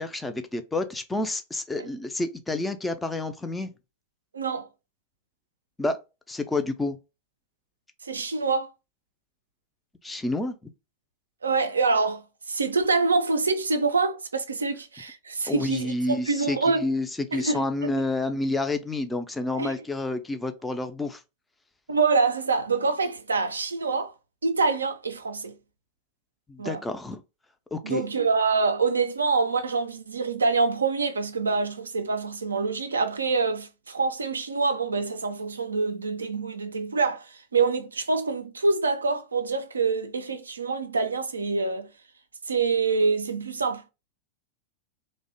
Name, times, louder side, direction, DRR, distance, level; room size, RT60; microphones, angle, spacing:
voice 1, 0.0-3.7 5.8-6.0 6.3-7.0 10.0-10.5 15.5-17.1 17.3-21.2 26.5-27.2 27.7-28.0, left 2 dB, 10° left, 0.3 m, -29 dB
voice 2, 4.3-4.7 8.0-8.7 11.4-16.9 17.3-18.0 19.5-19.8 21.9-24.1 24.4-25.6 26.6-26.8 27.8-41.9 42.5-43.9, right 4 dB, 75° right, 0.3 m, -26 dB
2.6 x 2.1 x 2.6 m
figure-of-eight pair, 90°, 0 cm